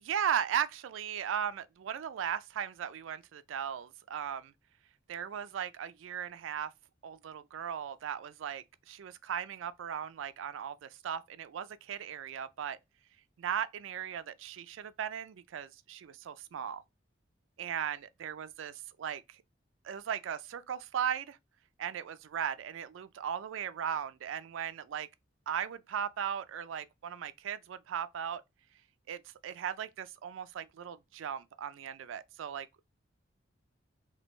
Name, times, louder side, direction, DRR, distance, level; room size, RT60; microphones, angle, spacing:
voice 1, 0.1-4.5 5.1-6.7 7.0-12.8 13.4-16.8 17.6-19.2 19.8-21.4 21.8-25.1 25.5-28.4 29.1-32.8, right 8 dB, 85° right, 0.3 m, -37 dB
3.3 x 2.4 x 3.0 m
head